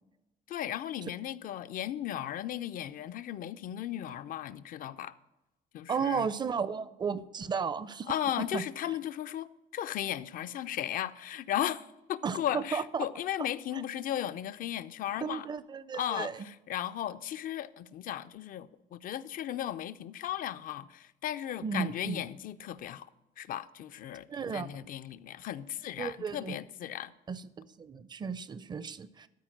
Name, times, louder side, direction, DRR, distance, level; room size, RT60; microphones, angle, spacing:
voice 1, 0.5-5.1 5.7-6.3 8.1-15.5 15.9-23.1 23.4-27.1, left 11 dB, 55° left, 0.4 m, -36 dB
voice 2, 5.9-8.1 8.5-8.6 12.2-13.1 15.2-16.5 21.6-22.2 24.3-24.7 26.0-26.6 27.3-29.3, right 6 dB, 25° right, 0.4 m, -34 dB
13.0 x 4.4 x 5.9 m
cardioid pair, 110°, 17 cm